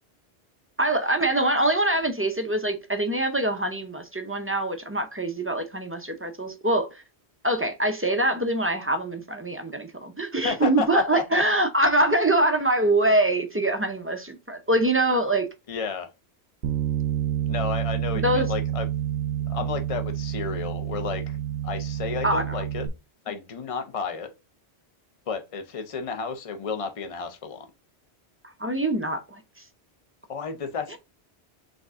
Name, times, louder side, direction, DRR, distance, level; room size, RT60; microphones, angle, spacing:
voice 1, 0.8-6.9 7.4-15.5 18.2-18.5 22.2-22.4 28.6-29.4, right 1 dB, 20° right, 0.4 m, -24 dB
voice 2, 10.4-11.4 15.7-16.1 17.5-18.9 19.5-21.4 21.6-22.9 23.3-24.3 25.3-27.7 30.3-31.0, left 5 dB, 35° left, 0.7 m, -32 dB
Bass guitar, 16.6-22.9, right 10 dB, 70° right, 0.9 m, -28 dB
5.1 x 3.6 x 2.5 m
omnidirectional pair, 1.1 m